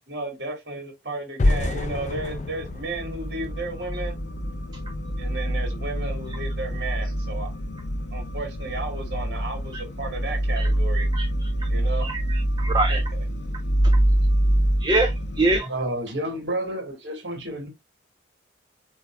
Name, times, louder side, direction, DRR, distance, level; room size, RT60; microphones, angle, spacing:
voice 1, 0.1-4.2 5.2-7.5 8.1-11.1 11.7-12.1 12.9-13.2, right 2 dB, 65° right, 2.1 m, -34 dB
sound 1, 1.4-4.4, left 2 dB, 40° left, 0.4 m, -27 dB
sound 2, 1.7-15.6, right 1 dB, 85° left, 0.7 m, -26 dB
voice 2, 11.0-11.5 12.0-13.0 14.8-15.7, right 2 dB, 25° right, 0.5 m, -25 dB
voice 3, 15.5-17.7, right 1 dB, 85° right, 1.5 m, -30 dB
8.0 x 2.7 x 2.2 m
head